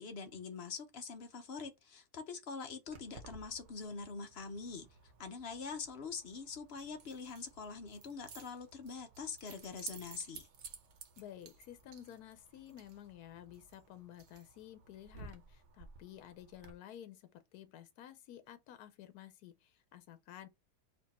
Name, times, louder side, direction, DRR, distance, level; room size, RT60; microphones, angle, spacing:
voice 1, 0.0-4.9 5.2-10.5, left 5 dB, 50° left, 0.9 m, -44 dB
Keys jangling, 2.9-16.7, right 4 dB, 60° right, 1.0 m, -55 dB
voice 2, 11.2-20.5, left 11 dB, 85° left, 1.1 m, -52 dB
4.4 x 2.7 x 4.1 m
omnidirectional pair, 1.6 m